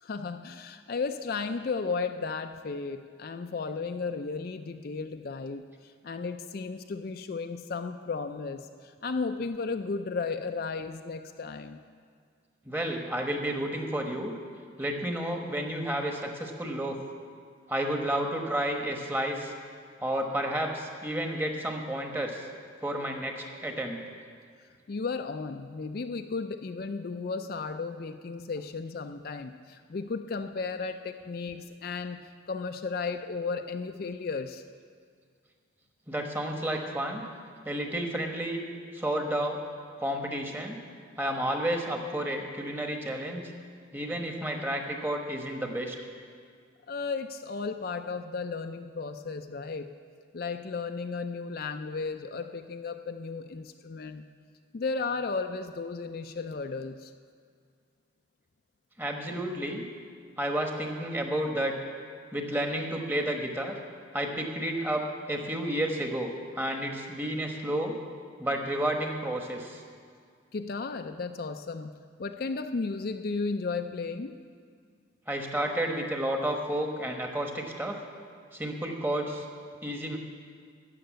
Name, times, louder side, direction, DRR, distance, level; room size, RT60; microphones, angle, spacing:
voice 1, 0.0-11.8 24.9-34.6 46.9-49.9 50.3-54.2 54.7-57.1 70.5-71.9 72.2-74.3, left 4 dB, 50° left, 7 dB, 0.4 m, -34 dB
voice 2, 12.7-14.3 14.8-17.0 17.7-19.5 20.0-22.5 22.8-24.0 36.1-37.2 37.6-38.6 38.9-39.6 40.0-40.8 41.2-43.5 43.9-46.0 59.0-59.8 60.4-61.7 62.3-63.7 64.1-68.0 68.4-69.8 75.3-78.0 78.5-79.4 79.8-80.2, right 1 dB, 10° right, 2 dB, 1.0 m, -31 dB
13.5 x 6.6 x 9.1 m, 2.1 s
head